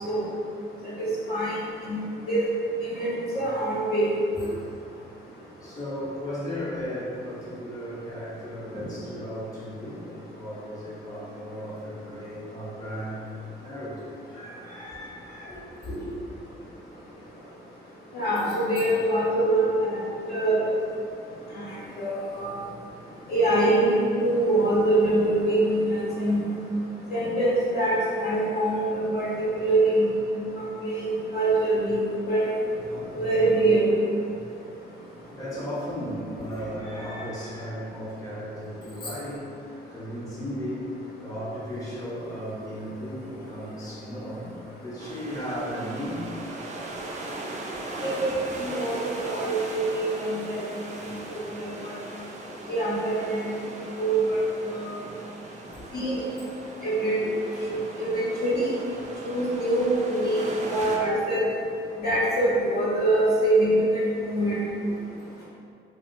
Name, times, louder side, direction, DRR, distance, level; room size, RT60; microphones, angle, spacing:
voice 1, 1.0-1.6 1.9-2.0 2.3-2.4 2.9-3.1 3.3-4.1 4.3-4.4 18.1-20.0 20.3-20.6 22.0-22.5 23.3-23.9 24.2-26.4 27.1-30.1 30.4-31.9 32.3-32.5 33.1-33.9 48.0-48.3 48.6-48.9 49.2-50.7 51.6-51.9 52.7-53.5 54.0-54.4 54.7-55.0 55.9-56.2 56.8-57.2 57.7-58.7 59.2-61.4 62.0-64.6, right 1 dB, 50° left, -8 dB, 1.0 m, -24 dB
voice 2, 5.6-15.6 16.0-16.1 32.9-33.2 35.3-40.9 41.2-44.5 44.8-46.3 51.3-51.4 57.5-57.7 60.6-60.8 65.4-65.5, equal, 15° left, -9 dB, 0.9 m, -36 dB
sound 1, 45.0-61.0, right 2 dB, 35° right, 0.4 m, -39 dB
2.9 x 2.8 x 2.6 m, 2.4 s
cardioid pair, 90°, 20 cm